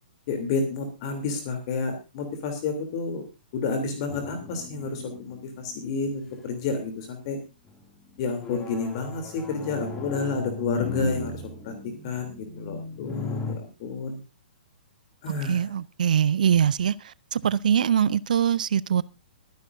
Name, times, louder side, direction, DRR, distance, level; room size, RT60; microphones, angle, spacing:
voice 1, 0.3-3.2 3.5-7.4 8.2-14.2 15.2-15.7, left 4 dB, 35° left, 3.1 m, -30 dB
sound 1, 4.1-5.9 6.4-6.9 7.7-13.6, left 3 dB, 15° left, 2.4 m, -37 dB
voice 2, 15.5-16.9 17.3-19.0, right 8 dB, 55° right, 0.5 m, -22 dB
23.0 x 10.5 x 2.6 m
figure-of-eight pair, 115°, 5 cm